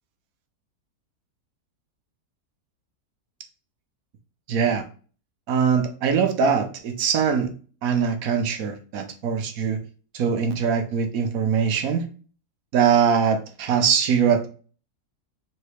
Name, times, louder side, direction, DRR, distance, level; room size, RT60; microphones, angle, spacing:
voice 1, 4.5-4.8 5.5-7.5 7.8-9.8 10.1-12.0 12.7-14.5, right 6 dB, 70° right, 1.2 m, -22 dB
4.0 x 3.4 x 3.2 m
omnidirectional pair, 1.6 m